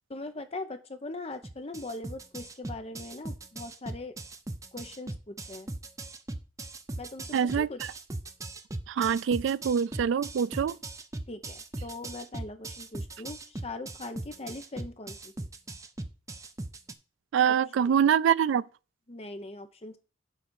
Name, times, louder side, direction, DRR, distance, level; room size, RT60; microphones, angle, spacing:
voice 1, 0.1-4.2 4.7-5.7 7.0-7.8 11.3-15.3 17.5-17.9 19.1-20.0, left 2 dB, 30° left, 0.8 m, -41 dB
sound 1, 1.4-16.9, right 2 dB, 15° right, 0.5 m, -39 dB
voice 2, 7.3-7.7 8.9-10.8 17.3-18.6, right 8 dB, 70° right, 0.3 m, -25 dB
7.4 x 4.0 x 6.2 m
head